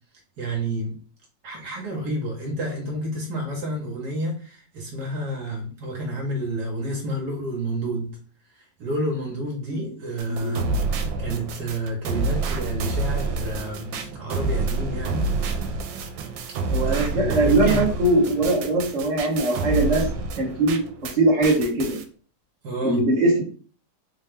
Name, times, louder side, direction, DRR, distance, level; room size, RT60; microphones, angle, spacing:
voice 1, 0.4-1.0 1.4-8.1 8.8-10.8 11.2-15.7 16.8-17.8 22.6-23.0, right 1 dB, 65° right, 0 dB, 1.3 m, -30 dB
sound 1, 10.2-21.2 21.4-22.0, right 3 dB, 85° right, 1.3 m, -28 dB
voice 2, 16.7-20.1 20.4-20.8 21.1-22.0 22.8-23.4, right 2 dB, 25° right, -2 dB, 1.1 m, -21 dB
4.0 x 2.2 x 3.5 m, 0.40 s
omnidirectional pair, 2.0 m